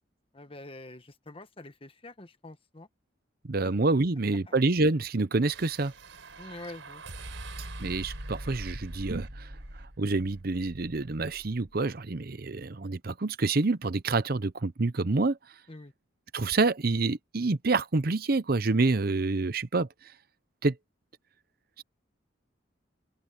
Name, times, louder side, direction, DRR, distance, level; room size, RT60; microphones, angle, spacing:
voice 1, 0.3-2.9 3.6-3.7 4.5-4.6 6.4-7.0 15.7-15.9, left 2 dB, 30° left, 1.3 m, -46 dB
voice 2, 3.4-5.9 7.8-9.5 10.0-15.4 16.3-19.9 20.6-20.7 21.8-21.9, right 3 dB, 50° right, 0.8 m, -27 dB
sound 1, 5.4-11.8, right 1 dB, 85° right, 4.3 m, -43 dB
open air
head